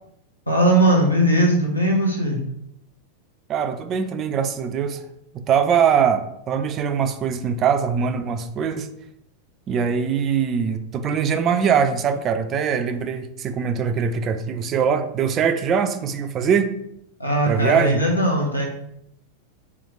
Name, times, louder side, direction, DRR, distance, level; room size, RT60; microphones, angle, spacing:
voice 1, 0.5-2.4 17.2-18.7, right 1 dB, 85° left, -1 dB, 0.9 m, -19 dB
voice 2, 3.5-5.0 5.3-8.9 9.7-16.7 17.5-18.0, right 7 dB, 30° right, 9 dB, 0.3 m, -22 dB
3.2 x 3.0 x 3.8 m, 0.78 s
figure-of-eight pair, 90°, 0 cm